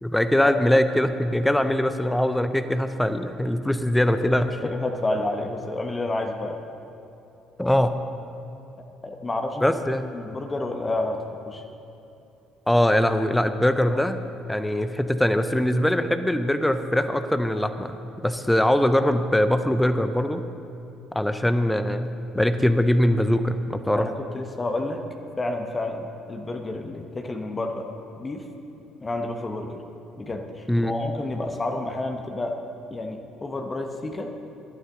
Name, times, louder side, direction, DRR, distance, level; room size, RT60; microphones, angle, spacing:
voice 1, 0.0-4.6 7.6-8.0 9.6-10.1 12.7-14.2 14.5-20.4 21.1-24.1 30.7-30.9, left 1 dB, 5° left, 10 dB, 0.9 m, -22 dB
voice 2, 4.6-6.6 9.0-9.6 10.1-11.6 24.0-25.0 25.4-27.9 28.2-28.5 29.0-29.8 30.2-32.6 32.9-34.3, left 2 dB, 25° left, 4 dB, 1.3 m, -30 dB
21.0 x 12.5 x 3.9 m, 2.8 s
figure-of-eight pair, 55°, 0 cm